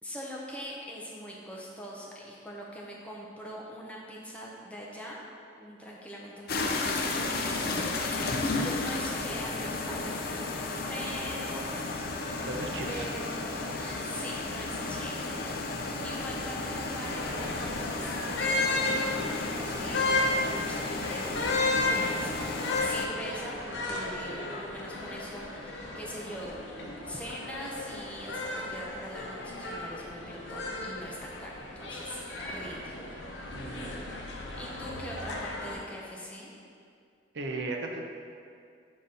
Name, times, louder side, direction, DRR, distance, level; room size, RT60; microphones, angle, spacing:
voice 1, 0.0-5.2 5.6-10.6 10.9-11.6 12.9-15.3 16.0-18.2 18.4-26.6 27.1-32.9 34.6-36.5, equal, 5° left, -4 dB, 0.7 m, -42 dB
sound 1, 6.5-23.1, left 3 dB, 50° left, 0.5 m, -33 dB
sound 2, 6.6-22.8, equal, 35° right, 1.3 m, -45 dB
voice 2, 12.5-13.1 33.5-34.0 37.3-38.0, right 2 dB, 60° right, 2 dB, 0.6 m, -36 dB
sound 3, 17.1-35.8, left 2 dB, 75° left, 0.8 m, -34 dB
7.1 x 4.0 x 3.8 m, 2.3 s
head